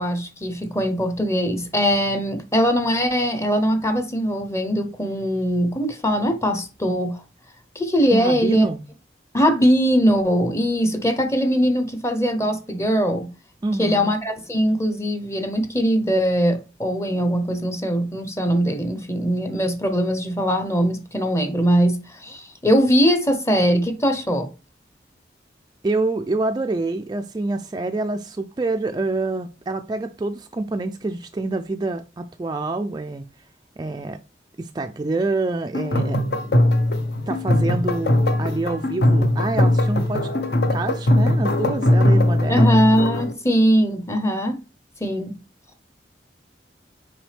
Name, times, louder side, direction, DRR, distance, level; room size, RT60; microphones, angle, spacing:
voice 1, 0.0-7.2 7.7-8.7 9.3-13.3 13.8-24.5 42.5-44.6 45.0-45.3, equal, 15° left, 0.8 m, -21 dB
voice 2, 8.1-8.8 13.6-14.1 25.8-33.5 33.8-34.2 34.6-36.2 37.3-40.3 40.7-42.8, right 2 dB, 25° right, 0.3 m, -26 dB
sound 1, 35.7-43.3, left 1 dB, 60° left, 0.8 m, -20 dB
6.0 x 4.8 x 3.3 m
head